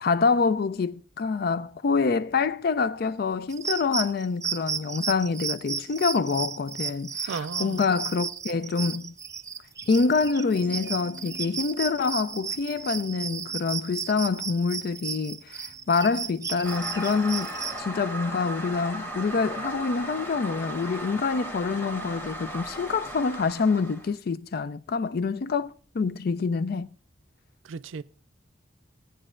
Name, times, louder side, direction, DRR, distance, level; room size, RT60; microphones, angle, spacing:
voice 1, 0.0-9.1 9.9-17.5 17.8-26.9, left 4 dB, 50° left, 0.4 m, -26 dB
sound 1, 3.5-17.8, right 6 dB, 15° right, 0.6 m, -34 dB
voice 2, 7.3-7.9 27.6-28.0, right 5 dB, 80° right, 0.4 m, -35 dB
sound 2, 10.6-16.9 17.2-17.6, left 2 dB, 85° left, 2.1 m, -54 dB
Toilet flush, 16.6-24.1, right 1 dB, 10° left, 1.1 m, -36 dB
17.0 x 9.9 x 2.5 m
head